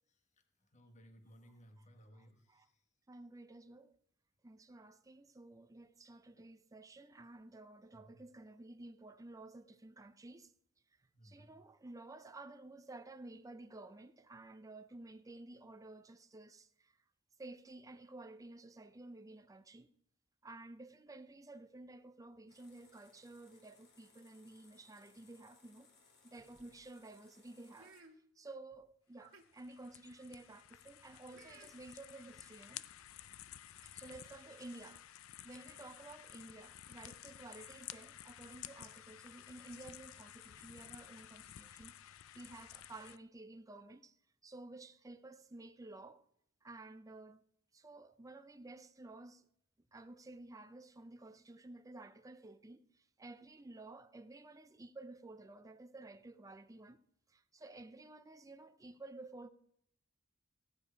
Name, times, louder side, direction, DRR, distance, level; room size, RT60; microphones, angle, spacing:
voice 1, 0.7-2.8 7.9-8.2 11.1-11.5, equal, 35° left, 1.3 m, -60 dB
voice 2, 2.1-2.7 3.1-4.0 4.4-10.5 11.2-17.0 17.4-19.9 20.4-25.9 26.2-27.9 28.4-32.9 33.8-35.0 35.4-44.2 44.4-46.2 46.6-47.4 47.7-49.5 49.9-59.5, right 2 dB, 15° right, 0.5 m, -53 dB
sound 1, 22.5-28.0, left 4 dB, 50° left, 2.9 m, -68 dB
sound 2, 26.2-26.8 27.7-28.2 28.7-28.8 29.1-29.4 30.1-30.3 31.3-31.7 32.7-32.8 33.1-33.3, right 3 dB, 70° right, 1.8 m, -61 dB
sound 3, 29.3-43.2, left 12 dB, 75° left, 0.4 m, -53 dB
16.0 x 8.7 x 5.0 m
head